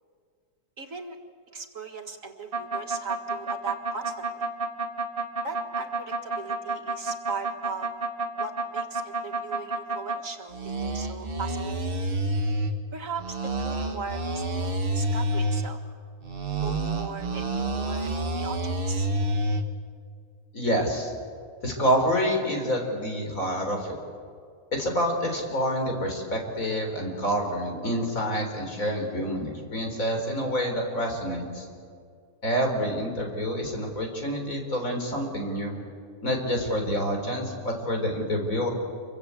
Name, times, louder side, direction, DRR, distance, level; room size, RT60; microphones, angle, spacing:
voice 1, 0.8-1.2 1.5-4.5 5.4-7.9 8.4-12.0 12.9-15.8 16.6-19.1, right 4 dB, 60° right, 4 dB, 2.3 m, -38 dB
sound 1, 2.5-10.2 10.5-12.7 13.2-15.7 16.2-19.6, right 2 dB, 40° right, 1.6 m, -28 dB
voice 2, 20.5-21.1 21.6-24.0 24.7-31.7 32.4-35.7 36.2-38.7, equal, 60° left, 2 dB, 4.5 m, -27 dB
28.0 x 23.5 x 8.3 m, 2.2 s
omnidirectional pair, 1.6 m